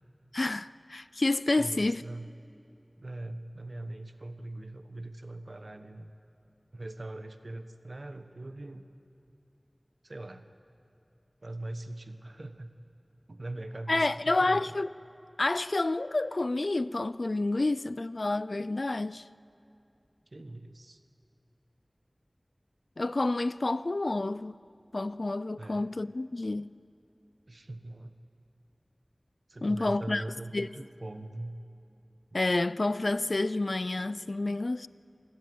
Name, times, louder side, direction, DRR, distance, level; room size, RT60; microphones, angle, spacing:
voice 1, 0.3-2.0 13.9-14.9 15.4-19.2 23.0-24.5 24.9-26.7 29.6-30.2 30.5-30.7 32.3-34.9, left 2 dB, 70° left, 0.4 m, -29 dB
voice 2, 1.6-2.3 3.0-6.1 6.7-8.8 10.0-10.5 11.4-12.7 13.3-14.7 20.3-21.0 25.6-25.9 27.5-28.1 29.5-31.6 32.3-32.4, right 1 dB, 70° right, 1.2 m, -41 dB
26.5 x 19.0 x 7.9 m
wide cardioid pair, 50°, 0 cm